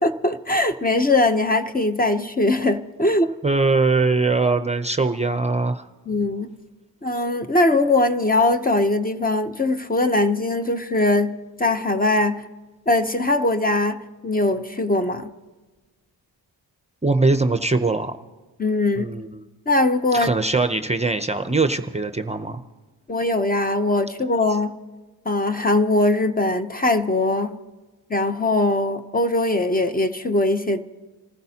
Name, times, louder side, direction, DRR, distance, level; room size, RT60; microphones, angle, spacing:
voice 1, 0.0-3.3 6.1-6.5 7.0-12.4 12.9-15.3 18.6-19.1 19.7-20.3 23.1-24.8 25.3-27.6 28.1-30.8, left 2 dB, 20° left, 8 dB, 0.7 m, -21 dB
voice 2, 3.4-5.9 17.0-18.2 19.0-19.4 20.1-22.6, right 3 dB, 15° right, 8 dB, 0.6 m, -21 dB
27.0 x 15.0 x 2.8 m, 1.3 s
cardioid pair, 95°, 39 cm